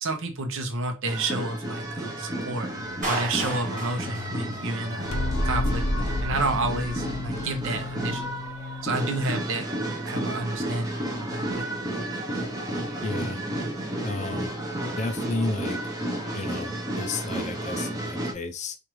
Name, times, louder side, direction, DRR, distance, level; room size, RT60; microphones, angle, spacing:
voice 1, 0.0-2.7 3.1-5.1 5.4-8.3 8.8-9.7 10.0-11.7, right 2 dB, 60° right, 0.8 m, -30 dB
sound 1, 1.1-18.3, right 1 dB, 15° right, 0.7 m, -32 dB
sound 2, 2.8-9.4, left 2 dB, 70° left, 0.7 m, -32 dB
Clapping, 3.0-5.1, right 2 dB, 40° right, 1.1 m, -33 dB
voice 2, 13.0-13.4 14.0-14.5 14.8-15.8 16.3-18.8, left 2 dB, 30° left, 0.4 m, -32 dB
4.5 x 2.4 x 3.0 m
head